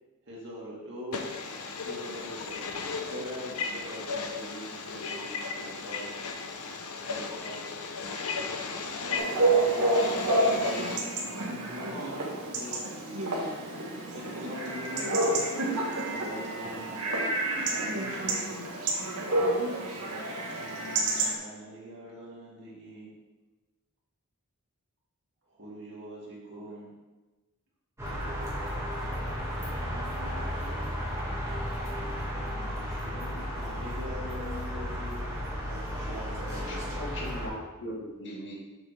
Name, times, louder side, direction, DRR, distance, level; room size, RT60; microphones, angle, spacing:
voice 1, 0.3-1.2 1.8-2.6 3.1-6.0 7.0-7.6 9.0-9.6 11.7-13.1 14.1-15.5 16.0-17.1 17.5-18.5 20.5-23.1 25.5-26.9 29.5-30.8 32.3-35.3 35.9-36.9, equal, 55° right, 2.4 m, -43 dB
voice 2, 1.1-11.0, left 4 dB, 80° left, 0.9 m, -36 dB
Chatter / Bark / Livestock farm animals working animals, 9.2-21.3, right 2 dB, 85° right, 1.5 m, -29 dB
sound 1, 28.0-37.5, equal, 15° right, 1.7 m, -34 dB
voice 3, 36.7-38.6, equal, 55° left, 1.7 m, -39 dB
7.1 x 6.3 x 3.5 m
head